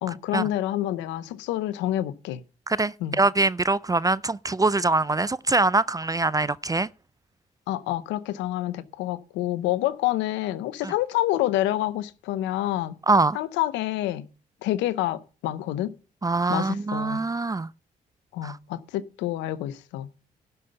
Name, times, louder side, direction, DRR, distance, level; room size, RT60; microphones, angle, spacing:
voice 1, 0.0-2.4 3.0-3.2 7.7-12.9 13.3-14.3 14.6-15.9 16.5-17.3 18.3-20.1, left 14 dB, 90° left, 0.7 m, -28 dB
voice 2, 2.7-6.9 10.8-10.9 13.1-13.4 16.2-17.7 18.4-18.6, right 3 dB, 20° right, 0.4 m, -23 dB
11.5 x 5.5 x 6.8 m
supercardioid pair, 50°, 18 cm